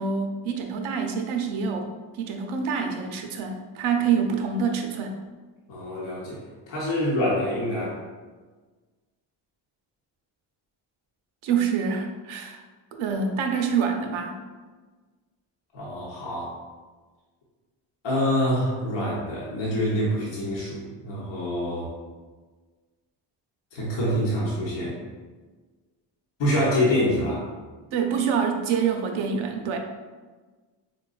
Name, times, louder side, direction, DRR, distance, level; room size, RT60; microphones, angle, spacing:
voice 1, 0.0-1.9 2.1-5.2 11.4-12.6 12.9-14.4 27.9-29.8, right 6 dB, 70° right, 4 dB, 0.6 m, -26 dB
voice 2, 5.7-6.4 6.7-8.0 15.7-16.5 18.0-21.9 23.7-25.0 26.4-27.4, equal, 60° left, -6 dB, 0.9 m, -26 dB
3.8 x 2.2 x 2.3 m, 1.4 s
supercardioid pair, 55°, 50 cm